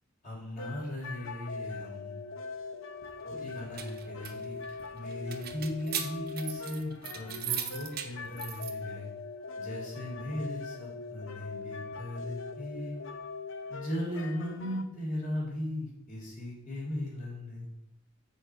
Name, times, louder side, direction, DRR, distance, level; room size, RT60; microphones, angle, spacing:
voice 1, 0.2-2.2 3.2-9.1 9.6-13.0 13.7-17.7, left 1 dB, 40° left, -3 dB, 3.3 m, -37 dB
sound 1, 0.6-14.8, left 4 dB, 70° left, 0.7 m, -42 dB
sound 2, 3.4-8.7, right 9 dB, 50° right, 0.8 m, -39 dB
6.4 x 4.8 x 6.8 m, 0.86 s
head